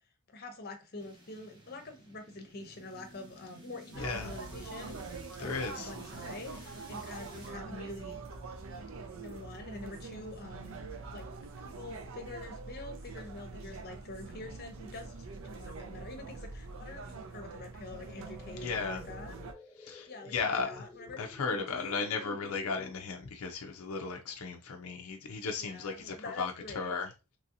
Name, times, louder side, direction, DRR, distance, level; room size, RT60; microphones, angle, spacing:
voice 1, 0.3-5.1 5.4-8.2 9.1-10.8 11.1-11.3 11.6-19.3 20.1-21.2 21.5-22.4 25.6-27.0, left 2 dB, 45° left, 0.7 m, -46 dB
sound 1, 1.0-7.5, right 1 dB, 20° right, 0.8 m, -53 dB
sound 2, 3.9-19.5, right 3 dB, 70° right, 0.5 m, -44 dB
voice 2, 4.0-4.3 5.4-5.9 18.5-19.0 19.8-20.8 21.2-27.1, left 4 dB, 85° left, 0.5 m, -35 dB
sound 3, 17.9-22.9, left 2 dB, 10° left, 0.4 m, -53 dB
3.0 x 2.7 x 2.6 m
head